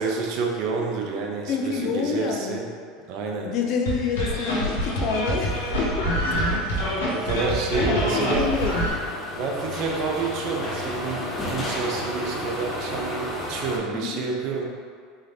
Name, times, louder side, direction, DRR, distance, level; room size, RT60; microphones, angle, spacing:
voice 1, 0.0-2.7 3.1-3.5 6.7-6.8 7.1-8.5 9.4-14.6, right 4 dB, 60° right, 1 dB, 0.6 m, -29 dB
voice 2, 1.5-2.6 3.4-6.1 6.8-7.1 7.8-9.0 13.9-14.3, left 5 dB, 55° left, 2 dB, 0.4 m, -28 dB
sound 1, 3.9-8.9, equal, 85° left, 1.0 m, -25 dB
sound 2, 7.9-13.8, left 1 dB, 25° left, 1.0 m, -32 dB
3.9 x 3.2 x 2.7 m, 2.1 s
hypercardioid pair, 85°, 0 cm